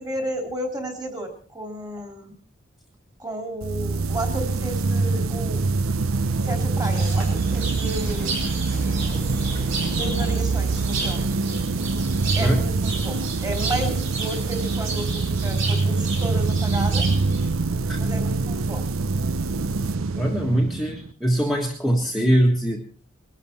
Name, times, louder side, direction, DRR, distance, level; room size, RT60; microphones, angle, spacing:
voice 1, 0.0-2.3 3.2-5.6 6.4-8.3 9.9-11.3 12.3-17.2 18.0-18.9, right 1 dB, 20° right, 4 dB, 3.3 m, -32 dB
sound 1, 3.6-21.1, right 3 dB, 85° right, 0.7 m, -24 dB
sound 2, 6.1-11.9, equal, 45° right, 3.6 m, -39 dB
sound 3, 6.9-17.5, right 3 dB, 65° right, 4.3 m, -33 dB
voice 2, 12.4-12.8 17.9-18.1 20.2-22.8, right 1 dB, ahead, 0 dB, 1.6 m, -22 dB
21.0 x 12.5 x 4.4 m, 0.41 s
head